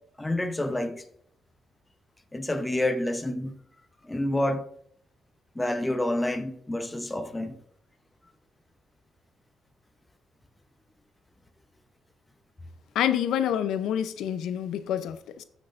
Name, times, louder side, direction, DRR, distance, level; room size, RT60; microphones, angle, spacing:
voice 1, 0.2-1.0 2.3-3.6 4.0-4.6 5.6-7.6, left 1 dB, 10° left, 0.8 m, -28 dB
voice 2, 12.9-15.4, left 10 dB, 90° left, 0.6 m, -27 dB
14.5 x 6.3 x 2.5 m
cardioid pair, 145°, 0 cm